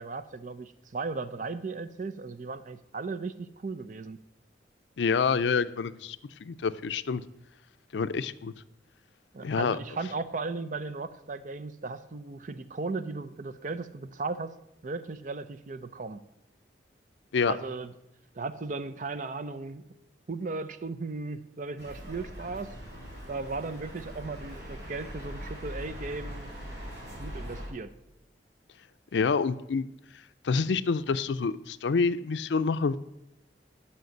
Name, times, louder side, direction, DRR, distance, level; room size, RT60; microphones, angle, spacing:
voice 1, 0.0-4.2 9.3-14.5 14.8-16.2 17.5-17.9 18.3-19.8 20.3-22.8 23.3-26.5 27.2-27.9, right 3 dB, 45° right, 13 dB, 0.5 m, -36 dB
voice 2, 5.0-7.2 7.9-8.5 9.4-9.8 17.3-17.5 29.1-29.9 30.4-33.0, left 5 dB, 75° left, 13 dB, 0.4 m, -27 dB
sound 1, 21.8-27.7, equal, 60° right, 3.4 m, -41 dB
7.8 x 5.7 x 7.8 m, 0.89 s
head